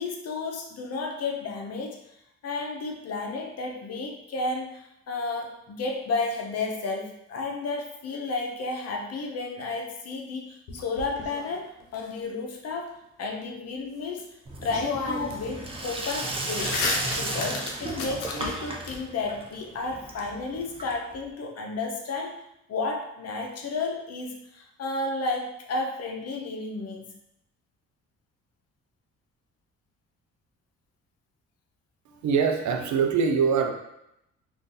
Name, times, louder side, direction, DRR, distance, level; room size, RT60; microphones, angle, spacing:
voice 1, 0.0-2.0 2.4-14.3 14.6-16.9 17.2-22.4 22.7-27.1, left 3 dB, 55° left, 1 dB, 0.7 m, -32 dB
sound 1, 10.7-12.0 14.2-14.3 14.7-15.5 15.8-19.0, left 3 dB, 85° left, 0.7 m, -33 dB
Sink (filling or washing), 14.5-21.2, right 2 dB, 20° right, 0.5 m, -35 dB
voice 2, 32.1-33.7, right 6 dB, 70° right, 4 dB, 0.6 m, -23 dB
2.6 x 2.5 x 3.8 m, 0.81 s
cardioid pair, 90°, 30 cm